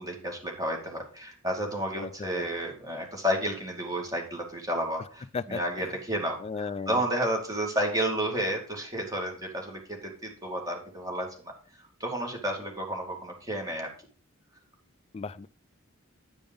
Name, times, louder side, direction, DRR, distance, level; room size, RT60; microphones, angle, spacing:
voice 1, 0.0-11.3 12.0-13.9, right 1 dB, 15° right, 2.2 m, -31 dB
voice 2, 2.0-2.5 5.3-5.9 6.4-7.0 15.1-15.5, left 4 dB, 30° left, 0.3 m, -36 dB
9.5 x 5.3 x 5.3 m
head